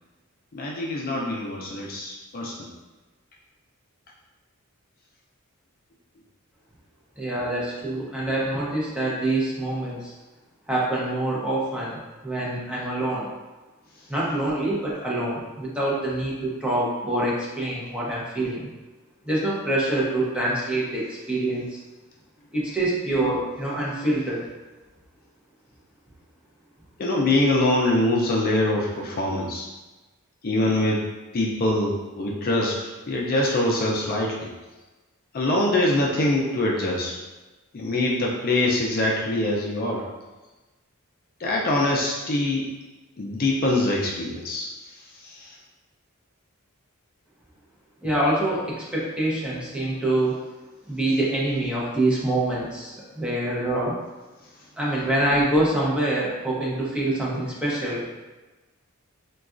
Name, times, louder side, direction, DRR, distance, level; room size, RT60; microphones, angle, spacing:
voice 1, 0.5-2.7 13.9-14.1 27.0-29.7 30.4-31.1 31.3-34.5 35.3-37.2 37.7-40.0 41.4-42.7 43.2-45.6 54.4-54.7, left 1 dB, 45° left, -3 dB, 0.4 m, -24 dB
voice 2, 7.2-10.1 10.7-13.3 14.1-18.7 19.2-21.8 22.5-24.5 48.0-50.4 50.9-53.9 54.8-58.0, right 1 dB, 5° right, -6 dB, 0.6 m, -25 dB
3.9 x 2.3 x 2.4 m, 1.2 s
head